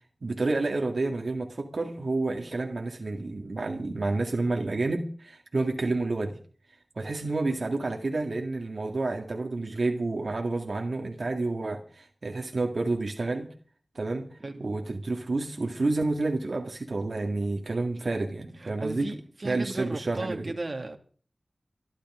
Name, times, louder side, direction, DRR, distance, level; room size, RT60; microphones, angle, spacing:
voice 1, 0.2-6.4 7.0-13.5 14.0-14.3 14.6-19.1 19.4-20.5, right 2 dB, 70° right, 2.0 m, -29 dB
voice 2, 14.4-14.7 18.6-21.0, right 2 dB, 55° right, 2.2 m, -36 dB
26.0 x 11.5 x 3.7 m
wide cardioid pair, 50°, 0 cm